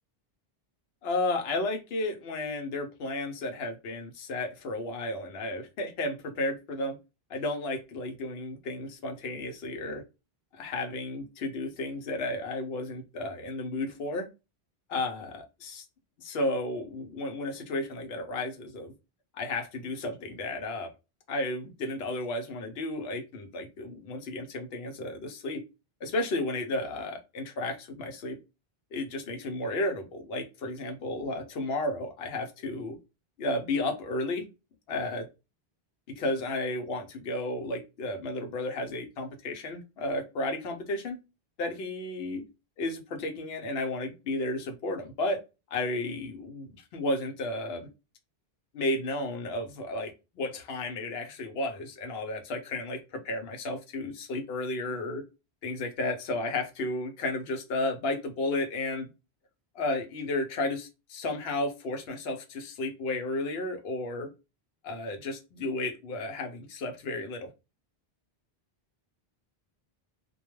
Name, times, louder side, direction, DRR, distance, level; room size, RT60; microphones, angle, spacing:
voice 1, 1.0-7.0 7.3-10.0 10.5-14.3 14.9-15.8 16.2-18.9 19.3-20.9 21.3-25.6 26.0-28.4 28.9-33.0 33.4-34.5 34.9-35.3 36.1-41.2 41.6-42.4 42.8-45.4 45.7-47.9 48.7-55.2 55.6-59.1 59.7-64.3 64.8-67.5, left 2 dB, 80° left, 5 dB, 0.9 m, -33 dB
2.2 x 2.2 x 3.0 m, 0.28 s
omnidirectional pair, 1.0 m